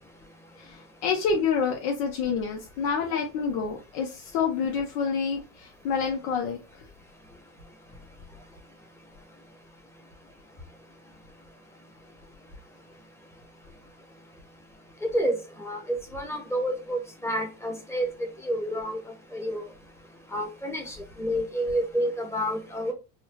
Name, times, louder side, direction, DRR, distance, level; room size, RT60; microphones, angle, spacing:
voice 1, 0.6-6.6, left 6 dB, 75° left, 0.9 m, -28 dB
voice 2, 15.0-18.1 18.4-19.0 19.3-19.6 20.3-22.9, equal, 5° left, 1.0 m, -29 dB
4.0 x 2.3 x 3.0 m
supercardioid pair, 120°, 45 cm